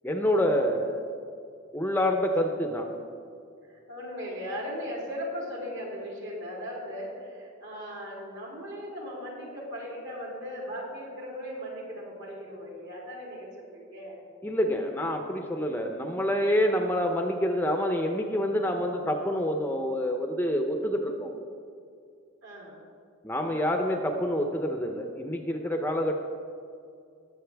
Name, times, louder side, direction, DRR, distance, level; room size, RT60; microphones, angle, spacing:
voice 1, 0.0-1.0 1.7-2.9 14.4-21.3 23.2-26.1, equal, 10° left, 3 dB, 0.6 m, -27 dB
voice 2, 3.6-14.2 22.4-22.8 23.5-23.8, equal, 60° right, -4 dB, 3.3 m, -38 dB
20.5 x 7.7 x 3.4 m, 2.4 s
head